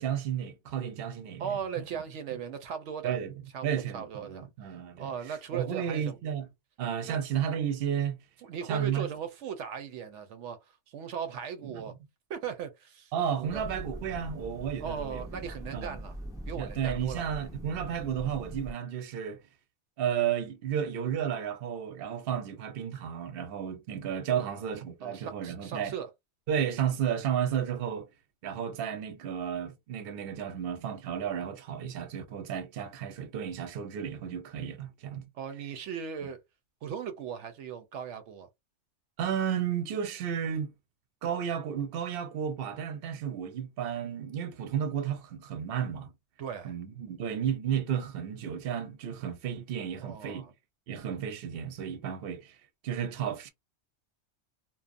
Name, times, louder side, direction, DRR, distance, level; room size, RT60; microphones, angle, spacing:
voice 1, 0.0-1.4 3.0-3.3 3.6-5.1 5.5-6.5 6.8-8.2 8.7-9.1 13.1-15.4 15.7-16.0 16.6-19.4 20.0-25.9 26.5-28.1 28.4-35.3 39.2-40.7 41.2-46.1 46.6-50.4 50.9-52.6 52.8-53.5, right 8 dB, 60° right, 0.8 m, -32 dB
voice 2, 1.4-3.2 3.5-4.5 5.0-6.2 7.1-7.2 8.4-11.9 12.3-13.6 14.8-16.2 16.5-17.3 24.4-24.7 25.0-26.1 35.3-36.4 36.8-38.5 46.4-46.7 50.0-50.5, right 7 dB, 90° right, 0.9 m, -38 dB
sound 1, 13.5-18.7, equal, 5° right, 0.3 m, -42 dB
2.6 x 2.1 x 2.5 m
omnidirectional pair, 1.2 m